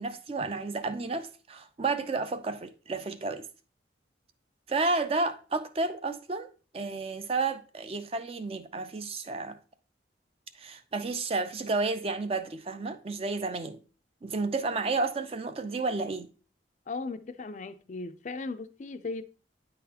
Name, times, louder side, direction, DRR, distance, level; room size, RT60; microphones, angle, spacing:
voice 1, 0.0-3.4 4.7-6.5 6.7-9.5 10.6-13.8 14.2-16.3, right 3 dB, 30° right, 0.4 m, -31 dB
voice 2, 16.9-19.2, left 3 dB, 40° left, 0.4 m, -37 dB
9.2 x 3.9 x 2.8 m
head